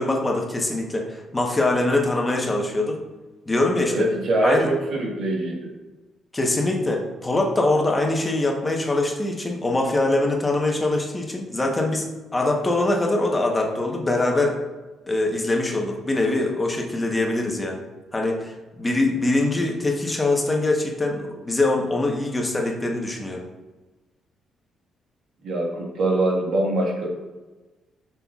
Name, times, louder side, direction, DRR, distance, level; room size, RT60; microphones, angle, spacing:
voice 1, 0.0-3.0 3.5-3.9 4.4-4.7 6.3-12.1 12.3-14.6 15.1-17.8 18.1-23.4, left 2 dB, 20° left, 0 dB, 1.1 m, -23 dB
voice 2, 3.9-5.7 25.4-27.1, right 1 dB, 70° right, -1 dB, 1.6 m, -23 dB
7.6 x 5.6 x 2.4 m, 1.2 s
cardioid pair, 90°, 0 cm